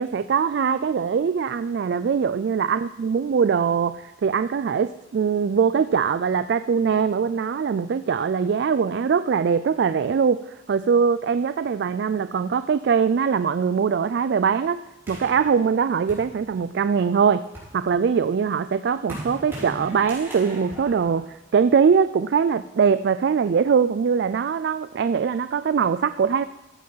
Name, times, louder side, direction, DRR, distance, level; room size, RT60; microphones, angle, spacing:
voice 1, 0.0-14.8 15.1-17.5 17.7-26.4, right 6 dB, 60° right, 12 dB, 0.3 m, -22 dB
sound 1, 15.1-16.9 17.3-22.0, right 1 dB, 15° right, 5.2 m, -40 dB
14.5 x 7.6 x 5.6 m, 0.98 s
head